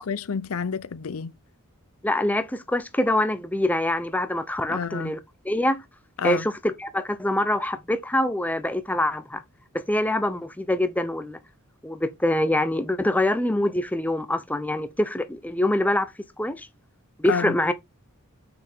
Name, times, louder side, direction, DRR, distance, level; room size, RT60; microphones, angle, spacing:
voice 1, 0.0-1.3 4.7-5.1 6.2-6.5 17.3-17.6, left 6 dB, 70° left, 0.6 m, -29 dB
voice 2, 2.0-5.2 5.4-5.8 6.2-9.4 9.7-11.4 11.8-16.1 16.4-16.7 17.2-17.7, left 1 dB, 5° left, 0.7 m, -25 dB
7.0 x 6.1 x 3.6 m
head